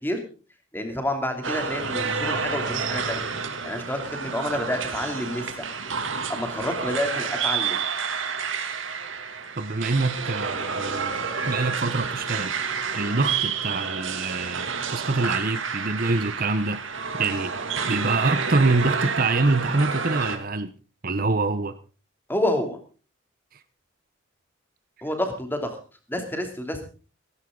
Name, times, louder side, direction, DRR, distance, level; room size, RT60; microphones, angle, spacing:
voice 1, 0.7-3.3 3.6-5.7 6.3-7.8 22.3-22.8 25.0-25.8 26.1-26.9, left 1 dB, 10° left, 5 dB, 2.9 m, -28 dB
sound 1, 1.4-20.4, right 5 dB, 70° right, 2.4 m, -29 dB
sound 2, 1.7-3.7 6.3-6.5, left 1 dB, 35° left, 7.8 m, -41 dB
voice 2, 9.6-11.2 11.4-12.5 12.9-16.8 17.1-17.5 17.8-20.7 21.0-21.8 23.5-23.6, right 3 dB, 45° right, 12 dB, 0.9 m, -25 dB
16.5 x 15.5 x 3.8 m, 0.36 s
head